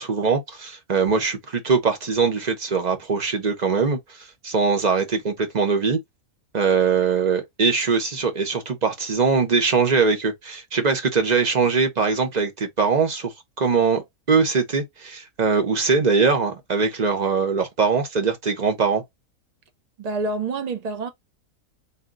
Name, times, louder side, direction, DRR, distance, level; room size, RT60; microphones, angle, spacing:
voice 1, 0.0-4.0 4.4-6.0 6.5-19.0, right 5 dB, 35° right, 0.9 m, -22 dB
voice 2, 20.0-21.1, right 3 dB, 75° right, 0.3 m, -27 dB
4.2 x 2.2 x 3.7 m
omnidirectional pair, 1.5 m